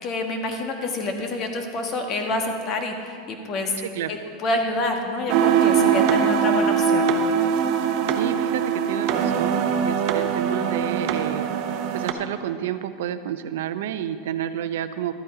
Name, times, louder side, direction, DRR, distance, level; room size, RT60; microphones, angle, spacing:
voice 1, 0.0-2.9 3.3-3.7 4.1-7.0, left 2 dB, 40° left, 3 dB, 1.5 m, -27 dB
voice 2, 3.8-4.2 8.1-11.4 11.9-15.1, right 10 dB, 80° right, 11 dB, 0.6 m, -30 dB
sound 1, 5.3-12.1, right 7 dB, 55° right, 0.9 m, -22 dB
12.5 x 9.1 x 4.9 m, 2.3 s
supercardioid pair, 135°, 0 cm